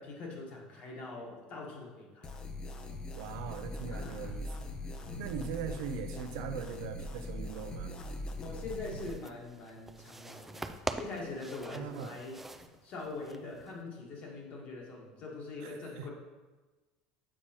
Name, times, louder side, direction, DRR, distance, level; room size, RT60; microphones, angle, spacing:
voice 1, 0.0-2.3 3.9-4.3 5.1-5.3 8.4-16.1, left 3 dB, 50° left, -2 dB, 1.5 m, -43 dB
sound 1, 2.2-9.1, left 1 dB, 30° left, 0.6 m, -41 dB
voice 2, 3.1-4.5 5.0-7.9 11.7-12.2 15.6-16.1, right 7 dB, 75° right, 8 dB, 0.5 m, -40 dB
sound 2, 8.8-13.8, right 2 dB, 10° right, 0.3 m, -44 dB
7.2 x 4.7 x 2.9 m, 1.2 s
supercardioid pair, 110°, 3 cm